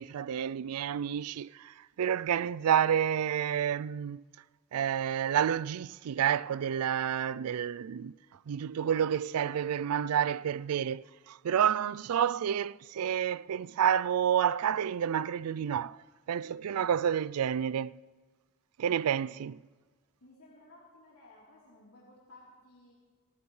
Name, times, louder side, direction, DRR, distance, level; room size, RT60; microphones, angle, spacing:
voice 1, 0.0-4.2 4.7-8.1 8.5-16.0 16.3-18.0 18.8-19.6, right 9 dB, 75° right, 0.4 m, -29 dB
voice 2, 20.2-22.9, left 2 dB, 80° left, 3.6 m, -56 dB
28.5 x 15.0 x 3.2 m
head